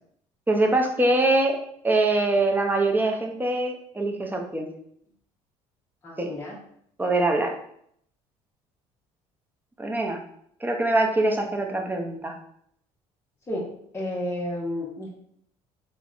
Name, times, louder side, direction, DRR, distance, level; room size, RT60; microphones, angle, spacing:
voice 1, 0.5-1.6 1.8-4.7 6.2-6.3 7.0-7.6 9.8-10.2 10.6-12.4, right 2 dB, 15° right, 3 dB, 0.5 m, -23 dB
voice 2, 6.0-6.5 13.5-13.7 13.9-15.1, left 1 dB, 20° left, -6 dB, 0.7 m, -31 dB
3.4 x 2.1 x 2.4 m, 0.69 s
supercardioid pair, 85°, 14 cm